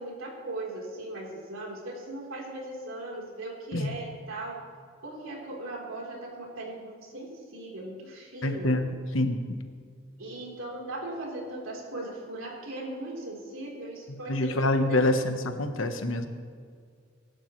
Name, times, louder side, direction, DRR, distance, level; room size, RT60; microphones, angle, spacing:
voice 1, 0.0-4.6 5.0-8.8 10.2-14.5 14.8-15.1, right 1 dB, 90° right, -3 dB, 3.9 m, -38 dB
voice 2, 8.4-8.9 9.1-9.4 14.3-16.3, left 1 dB, 75° left, 7 dB, 1.2 m, -26 dB
24.5 x 12.0 x 3.3 m, 2.1 s
head